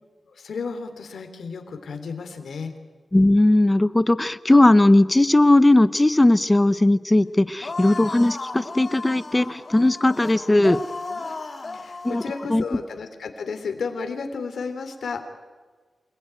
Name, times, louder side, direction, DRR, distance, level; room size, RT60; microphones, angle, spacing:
voice 1, 0.2-2.7 11.7-15.2, left 5 dB, 90° left, 7 dB, 3.4 m, -32 dB
voice 2, 3.1-10.8 12.0-12.2 12.5-12.6, left 1 dB, 15° left, 14 dB, 0.8 m, -18 dB
sound 1, 7.6-12.5, left 3 dB, 40° left, 2.4 m, -35 dB
28.5 x 20.0 x 9.2 m, 1.4 s
wide cardioid pair, 155°, 0 cm